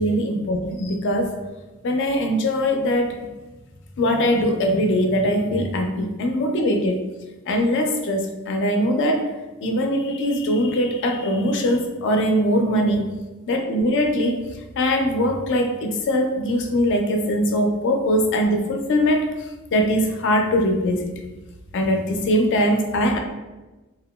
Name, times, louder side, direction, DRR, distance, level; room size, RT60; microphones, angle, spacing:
voice 1, 0.0-1.4 1.8-3.1 4.0-7.0 7.5-9.2 9.6-13.1 13.5-14.4 14.8-19.2 19.7-21.1 21.7-23.2, equal, 55° left, 3 dB, 0.4 m, -21 dB
2.8 x 2.2 x 2.2 m, 1.1 s
head